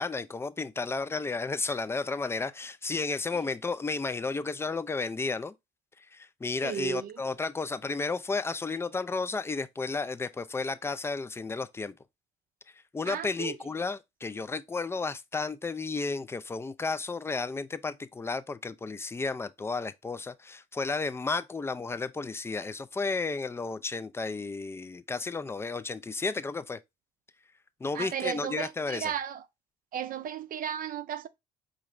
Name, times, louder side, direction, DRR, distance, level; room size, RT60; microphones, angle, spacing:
voice 1, 0.0-5.5 6.1-11.9 12.9-26.8 27.8-29.1, left 4 dB, 15° left, 0.4 m, -33 dB
voice 2, 6.6-7.2 13.1-13.6 27.9-29.4 29.9-31.3, right 9 dB, 50° right, 0.6 m, -34 dB
4.7 x 2.6 x 3.1 m
hypercardioid pair, 65°, 19 cm